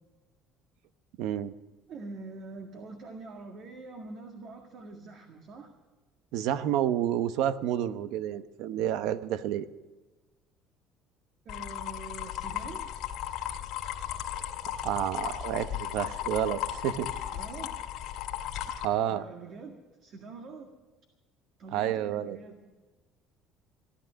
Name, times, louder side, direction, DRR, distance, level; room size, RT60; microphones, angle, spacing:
voice 1, 1.2-1.5 6.3-9.7 14.8-17.1 18.8-19.3 21.7-22.4, right 11 dB, 75° right, 13 dB, 0.8 m, -29 dB
voice 2, 1.9-5.7 11.5-12.9 17.3-17.7 19.1-19.7 20.0-20.7 21.6-22.6, right 3 dB, 55° right, 4 dB, 1.8 m, -44 dB
sound 1, 11.5-18.8, left 11 dB, 70° left, 1.9 m, -36 dB
16.5 x 11.5 x 6.3 m, 1.2 s
cardioid pair, 115°, 0 cm